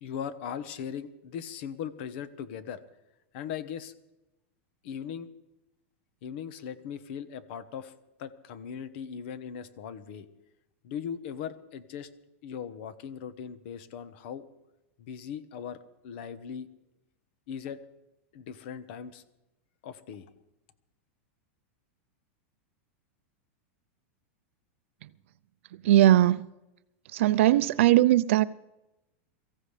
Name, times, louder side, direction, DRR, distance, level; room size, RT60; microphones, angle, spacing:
voice 1, 0.0-2.8 3.3-3.9 4.8-5.3 6.2-7.9 8.2-10.3 10.8-12.1 12.4-14.4 15.0-16.7 17.5-17.8 18.3-19.2 19.8-20.3, left 8 dB, 55° left, 1.1 m, -39 dB
voice 2, 25.8-26.4 27.1-28.4, right 14 dB, 70° right, 0.5 m, -20 dB
23.5 x 15.0 x 3.3 m
supercardioid pair, 155°, 7 cm